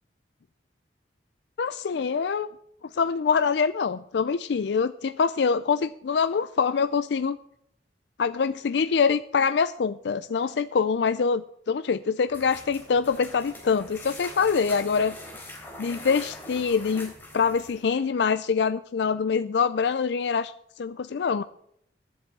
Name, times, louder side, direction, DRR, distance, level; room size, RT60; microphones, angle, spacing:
voice 1, 1.6-2.5 2.9-7.4 8.2-15.2 15.8-21.4, left 5 dB, 65° left, 13 dB, 0.4 m, -25 dB
sound 1, 12.3-17.9, left 1 dB, 10° left, 3.8 m, -43 dB
11.0 x 8.0 x 7.4 m, 0.67 s
head